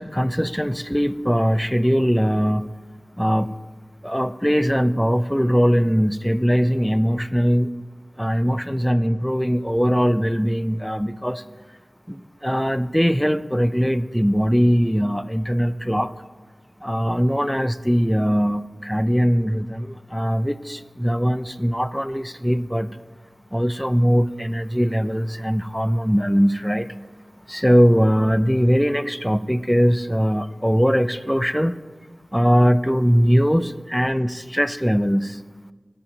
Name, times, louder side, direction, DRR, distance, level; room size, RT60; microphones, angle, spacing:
voice 1, 0.0-2.7 3.2-3.5 4.0-7.8 8.2-11.4 12.1-16.1 16.8-23.0 23.5-26.9 27.5-31.8 32.3-35.4, equal, ahead, 14 dB, 0.3 m, -21 dB
7.4 x 7.1 x 4.7 m, 1.4 s
wide cardioid pair, 45°, 0 cm